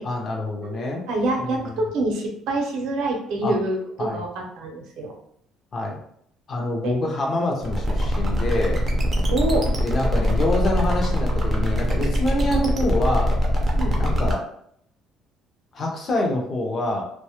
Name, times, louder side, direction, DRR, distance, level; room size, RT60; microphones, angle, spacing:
voice 1, 0.0-1.0 1.4-1.8 3.4-3.5 4.0-4.2 5.7-6.0 6.5-8.8 9.8-13.3 14.0-14.5 15.7-17.0, left 1 dB, 30° left, 0 dB, 0.5 m, -26 dB
voice 2, 0.6-5.1 6.8-6.9 9.3-9.7 13.7-14.0, right 2 dB, 75° right, 1 dB, 0.6 m, -26 dB
sound 1, 7.6-14.4, equal, 20° right, 0.5 m, -22 dB
2.1 x 2.0 x 2.8 m, 0.67 s
cardioid pair, 160°, 0 cm